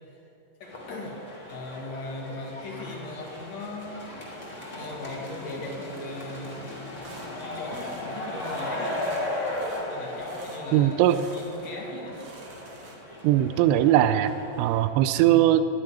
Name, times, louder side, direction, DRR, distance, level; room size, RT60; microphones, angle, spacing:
voice 1, 0.6-1.2 1.5-4.1 4.7-6.7 7.4-9.3 9.9-12.2, left 2 dB, 60° left, -1 dB, 1.8 m, -38 dB
sound 1, 0.6-14.9, left 1 dB, 10° left, 2.0 m, -37 dB
sound 2, 7.0-7.3 7.7-8.1 8.4-8.7 9.0-9.3 9.5-9.9 10.2-10.6 11.1-11.8 12.0-13.2, right 3 dB, 60° right, 1.5 m, -49 dB
voice 2, 10.7-11.2 13.2-14.3 14.6-15.6, right 12 dB, 85° right, 12 dB, 2.4 m, -20 dB
12.0 x 10.0 x 9.9 m, 2.9 s
omnidirectional pair, 5.4 m